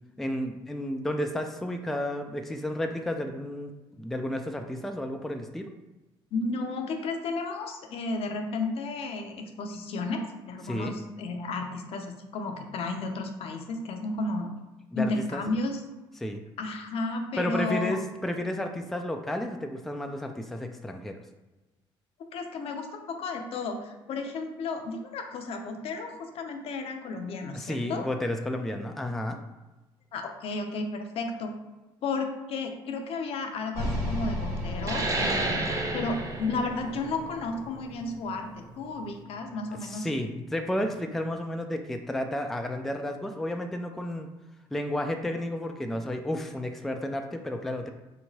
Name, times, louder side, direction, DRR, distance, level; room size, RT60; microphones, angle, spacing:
voice 1, 0.2-5.7 10.6-10.9 14.9-15.4 16.2-16.4 17.4-21.2 27.5-29.4 39.7-44.3 44.7-47.9, left 1 dB, ahead, 4 dB, 0.3 m, -32 dB
voice 2, 6.3-14.5 14.9-15.8 16.6-18.0 22.3-28.1 30.1-31.5 32.0-40.1, left 3 dB, 60° left, 4 dB, 0.5 m, -33 dB
sound 1, 33.7-38.0, left 1 dB, 80° right, 1.1 m, -34 dB
sound 2, 34.8-39.9, right 2 dB, 30° right, 0.7 m, -32 dB
3.4 x 2.9 x 2.7 m, 1.1 s
supercardioid pair, 70°, 11 cm